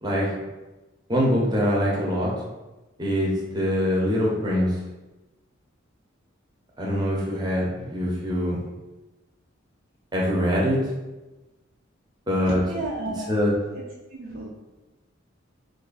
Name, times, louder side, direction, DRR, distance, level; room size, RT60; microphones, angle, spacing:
voice 1, 1.1-2.3 3.0-4.7 6.8-8.6 10.1-10.8 12.3-12.6 13.3-13.5, equal, 20° right, -4 dB, 0.7 m, -23 dB
voice 2, 12.4-13.4 13.8-14.5, right 2 dB, 75° right, -5 dB, 0.5 m, -33 dB
2.9 x 2.5 x 3.9 m, 1.1 s
head